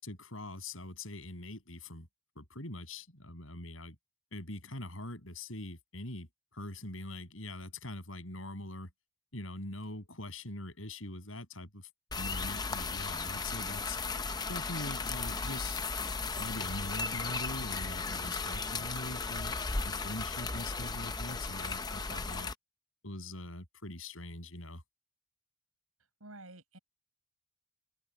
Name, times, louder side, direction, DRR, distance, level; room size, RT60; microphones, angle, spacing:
voice 1, 0.0-2.1 2.4-4.0 4.3-6.3 6.5-8.9 9.3-11.9 12.2-14.0 14.5-15.8 16.4-19.5 19.8-22.5 23.0-24.8, left 1 dB, 70° left, 7.4 m, -43 dB
sound 1, 12.1-22.5, left 4 dB, 20° left, 0.6 m, -36 dB
voice 2, 26.2-26.8, right 2 dB, 90° right, 7.6 m, -50 dB
open air
head